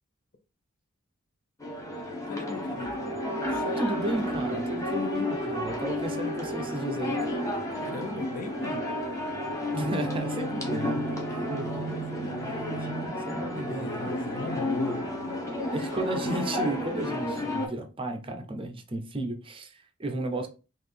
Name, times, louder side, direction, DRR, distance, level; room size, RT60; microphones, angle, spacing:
sound 1, 1.6-17.7, left 1 dB, 15° left, 0.8 m, -32 dB
voice 1, 2.3-3.0 3.4-3.8 7.8-8.8 11.3-12.9 13.5-15.0, left 3 dB, 40° left, 0.5 m, -39 dB
sound 2, 2.7-13.1, right 4 dB, 70° right, 0.3 m, -39 dB
voice 2, 3.8-7.5 9.7-12.6 12.9-14.1 15.7-20.5, right 1 dB, 25° right, 0.6 m, -34 dB
3.8 x 2.5 x 3.3 m
head